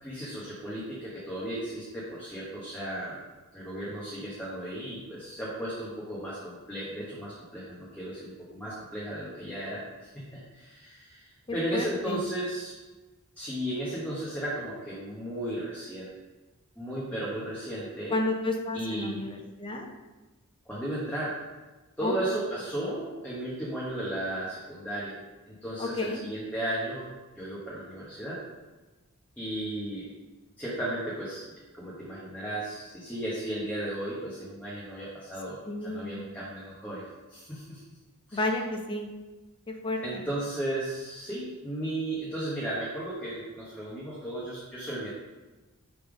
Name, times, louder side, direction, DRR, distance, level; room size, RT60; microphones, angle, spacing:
voice 1, 0.0-3.2 3.5-9.8 10.1-11.2 11.5-12.7 13.4-16.1 16.8-18.1 18.7-19.3 20.7-21.4 22.0-25.2 25.5-27.1 27.4-28.4 29.4-30.1 30.6-31.4 31.7-37.8 38.3-38.4 40.0-45.1, right 1 dB, 5° left, -8 dB, 1.1 m, -35 dB
voice 2, 11.5-12.2 18.1-19.9 22.0-22.1 25.8-26.2 35.7-36.2 38.3-39.1 39.7-40.2, left 2 dB, 25° left, 2 dB, 0.6 m, -31 dB
5.5 x 3.6 x 4.8 m, 1.2 s
head